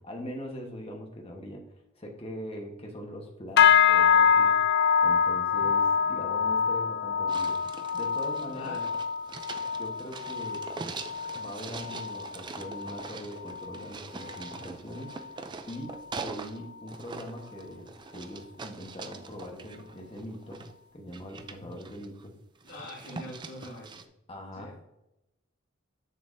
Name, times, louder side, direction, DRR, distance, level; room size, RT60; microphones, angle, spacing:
voice 1, 0.0-1.6 1.9-4.6 5.0-7.6 7.9-8.8 9.8-10.7 11.3-15.2 15.7-20.6 20.9-22.3 24.3-24.9, equal, 30° left, 1 dB, 1.1 m, -41 dB
sound 1, 3.6-13.1 13.4-13.9 14.3-14.6 15.1-15.2, left 7 dB, 55° left, 0.3 m, -25 dB
sound 2, 7.3-16.6 16.9-20.7 21.1-22.3 22.6-24.0, right 4 dB, 20° right, 0.4 m, -43 dB
voice 2, 8.5-8.9 22.6-24.0 24.6-24.8, left 1 dB, 85° left, -8 dB, 2.0 m, -43 dB
7.1 x 6.7 x 2.6 m, 0.89 s
head